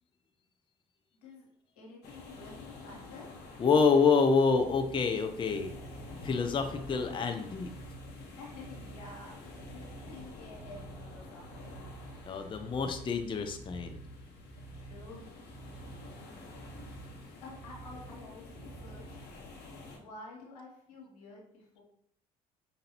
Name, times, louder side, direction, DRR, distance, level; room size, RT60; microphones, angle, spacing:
voice 1, 1.8-3.3 8.4-11.8 14.7-15.5 17.4-19.2 20.0-21.8, left 3 dB, 85° left, -2 dB, 1.2 m, -50 dB
sound 1, 2.0-20.0, left 3 dB, 60° left, 1.1 m, -49 dB
voice 2, 3.6-5.7 6.2-7.7 12.2-14.0, left 5 dB, 25° left, 6 dB, 0.5 m, -27 dB
sound 2, 4.4-19.3, right 3 dB, 10° right, 0.9 m, -50 dB
5.0 x 2.6 x 2.9 m, 0.68 s
hypercardioid pair, 55°, 19 cm